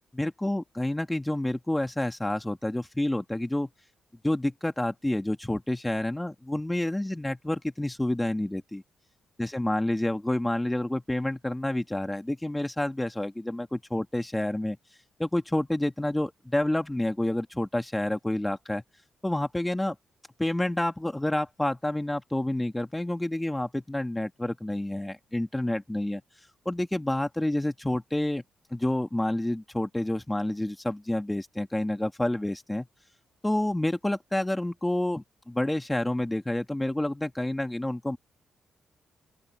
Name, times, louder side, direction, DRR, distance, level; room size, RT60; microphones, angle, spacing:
voice 1, 0.1-3.7 4.2-8.8 9.4-14.8 15.2-18.8 19.2-20.0 20.4-26.2 26.7-28.4 28.7-32.9 33.4-38.2, left 1 dB, 10° left, 2.4 m, -29 dB
open air
cardioid pair, 125°, 0 cm